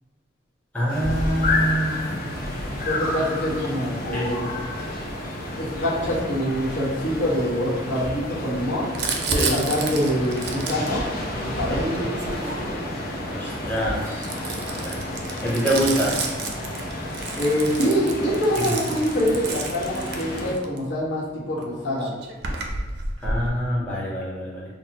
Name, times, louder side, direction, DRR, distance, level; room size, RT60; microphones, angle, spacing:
voice 1, 0.7-2.0 4.1-4.3 9.3-9.5 13.3-15.0 15.4-16.1 23.2-24.8, equal, 10° left, -7 dB, 0.7 m, -25 dB
sound 1, 0.9-20.5, left 1 dB, 50° left, 0.7 m, -31 dB
voice 2, 2.7-4.5 5.6-8.9 9.3-11.1 11.4-12.1 17.3-22.1, equal, 70° left, -7 dB, 1.3 m, -25 dB
Crumpling crinkling, 8.9-13.0 13.7-20.8 21.6-21.7 21.9-23.5, right 3 dB, 60° right, 0.5 m, -31 dB
5.9 x 2.1 x 2.8 m, 1.1 s
head